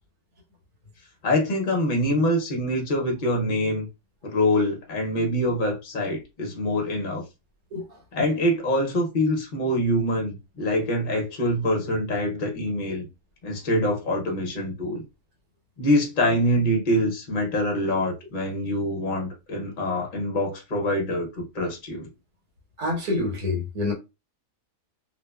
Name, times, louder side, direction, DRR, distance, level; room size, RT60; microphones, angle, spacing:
voice 1, 1.2-3.9 4.2-7.2 8.1-13.1 13.4-15.0 15.8-22.1, left 1 dB, 45° left, 0.7 m, -25 dB
voice 2, 22.8-23.9, left 2 dB, 85° right, 1.5 m, -27 dB
2.9 x 2.1 x 2.2 m
omnidirectional pair, 1.5 m